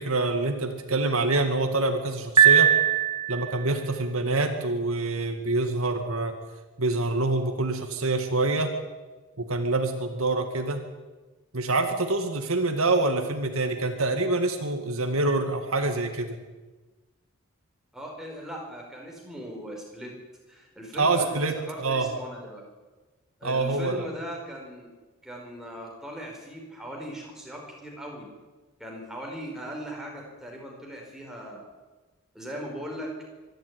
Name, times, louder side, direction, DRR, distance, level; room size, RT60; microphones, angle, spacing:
voice 1, 0.0-2.7 3.3-6.3 6.8-8.7 9.4-10.8 11.5-16.4 21.0-22.1 23.4-24.0, right 2 dB, 75° right, 6 dB, 2.2 m, -26 dB
Piano, 2.4-3.7, right 9 dB, 25° right, 1.6 m, -19 dB
voice 2, 17.9-20.2 20.5-22.6 23.4-24.9 25.2-28.3 28.8-31.7 32.3-33.1, equal, ahead, -1 dB, 4.7 m, -39 dB
24.0 x 12.0 x 9.6 m, 1.2 s
head